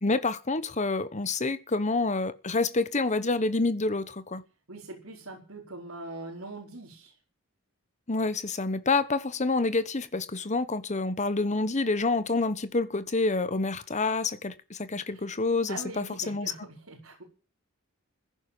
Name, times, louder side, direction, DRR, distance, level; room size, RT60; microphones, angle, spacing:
voice 1, 0.0-4.4 8.1-16.5, left 3 dB, 35° left, 1.1 m, -28 dB
voice 2, 4.7-7.1 15.1-15.3 15.7-17.2, right 2 dB, 75° right, 4.9 m, -42 dB
16.0 x 10.5 x 7.2 m
head